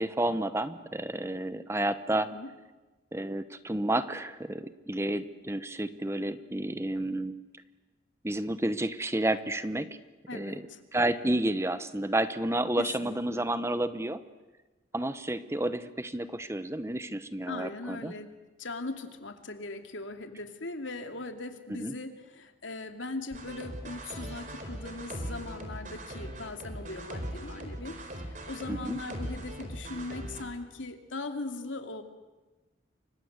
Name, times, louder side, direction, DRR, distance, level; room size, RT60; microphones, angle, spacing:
voice 1, 0.0-2.3 3.1-7.4 8.2-10.0 10.3-10.7 10.9-14.2 14.9-18.1 21.7-21.9 28.7-29.0, right 1 dB, 15° right, 12 dB, 0.9 m, -31 dB
voice 2, 10.3-10.8 12.8-13.5 17.5-27.9 28.3-32.0, left 2 dB, 85° left, 6 dB, 2.6 m, -39 dB
sound 1, 23.3-30.4, right 1 dB, 40° right, 4.2 m, -40 dB
29.0 x 25.0 x 8.1 m, 1.2 s
head